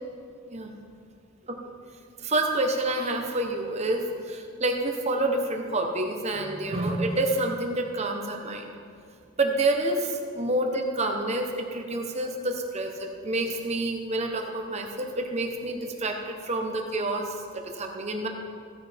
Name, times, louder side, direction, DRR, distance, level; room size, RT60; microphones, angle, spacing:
voice 1, 2.2-8.7 9.4-18.3, right 2 dB, 30° right, 3 dB, 1.1 m, -28 dB
15.5 x 9.3 x 3.6 m, 2.3 s
head